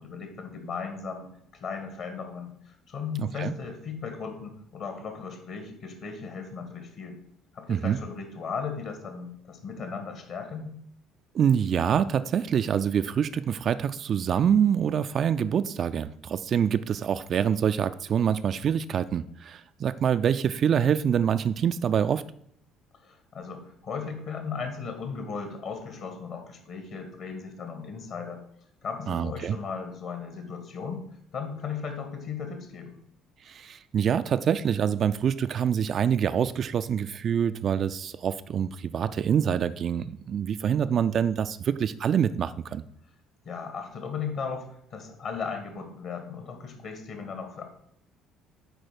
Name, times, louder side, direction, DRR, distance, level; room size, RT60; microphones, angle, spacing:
voice 1, 0.0-7.2 7.5-10.7 23.0-28.4 28.8-31.0 31.3-33.0 43.4-47.6, left 5 dB, 50° left, 6 dB, 1.8 m, -36 dB
voice 2, 3.2-3.5 7.7-8.0 11.3-22.2 29.1-29.6 33.5-42.8, right 8 dB, 45° right, 12 dB, 0.4 m, -25 dB
8.1 x 4.8 x 6.0 m, 0.69 s
figure-of-eight pair, 50°, 0 cm